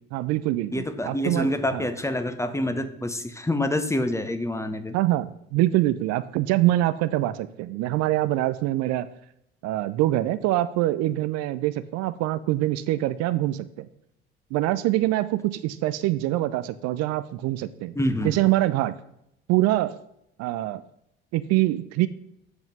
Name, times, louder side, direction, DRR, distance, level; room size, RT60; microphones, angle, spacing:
voice 1, 0.1-1.9 4.9-9.1 9.6-13.9 14.5-17.9 18.2-19.0 19.5-20.0 20.4-20.8 21.3-22.1, right 15 dB, 60° right, 13 dB, 0.5 m, -24 dB
voice 2, 0.7-4.9 18.0-18.3, left 1 dB, 10° left, 9 dB, 1.0 m, -27 dB
8.1 x 5.2 x 6.0 m, 0.77 s
hypercardioid pair, 55°, 30 cm